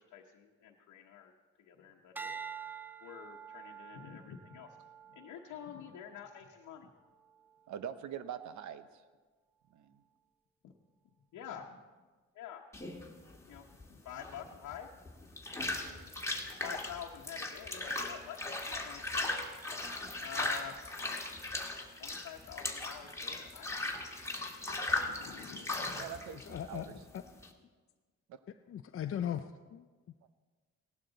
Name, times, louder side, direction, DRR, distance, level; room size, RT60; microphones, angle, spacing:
voice 1, 0.0-1.3 1.6-4.8 5.1-6.9 10.6-10.7 11.3-11.8 12.3-12.6 13.4-14.9 15.5-15.7 16.6-19.3 19.9-20.8 22.0-24.0 24.7-26.1 26.8-27.0, left 9 dB, 75° left, -1 dB, 1.1 m, -48 dB
sound 1, 2.2-6.6 7.2-7.6, right 6 dB, 5° right, 0.4 m, -47 dB
voice 2, 7.7-9.0 9.7-10.0 24.6-25.0 26.0-26.8 28.3-28.4, right 9 dB, 70° right, 12 dB, 0.9 m, -44 dB
sound 2, 12.7-27.5, left 2 dB, 10° left, 1.7 m, -38 dB
voice 3, 26.3-26.9 27.1-27.2 28.7-29.9, left 9 dB, 45° left, 6 dB, 0.6 m, -38 dB
17.0 x 11.5 x 4.0 m, 1.4 s
cardioid pair, 90°, 30 cm